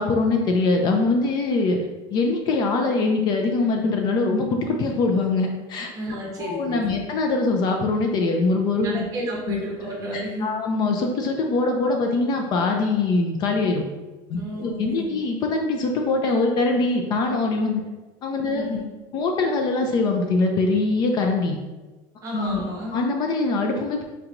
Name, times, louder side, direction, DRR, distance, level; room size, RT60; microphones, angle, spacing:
voice 1, 0.0-1.8 2.1-5.9 6.4-9.0 9.5-9.6 10.1-13.8 14.3-17.8 18.2-18.8 19.1-21.6 22.3-22.6 22.9-24.0, left 3 dB, 40° left, 2 dB, 0.4 m, -23 dB
voice 2, 5.9-7.0 8.8-10.6 14.4-15.2 18.4-18.8 22.2-23.0, right 1 dB, 30° right, -2 dB, 0.9 m, -32 dB
4.4 x 2.9 x 2.5 m, 1.2 s
cardioid pair, 165°, 11 cm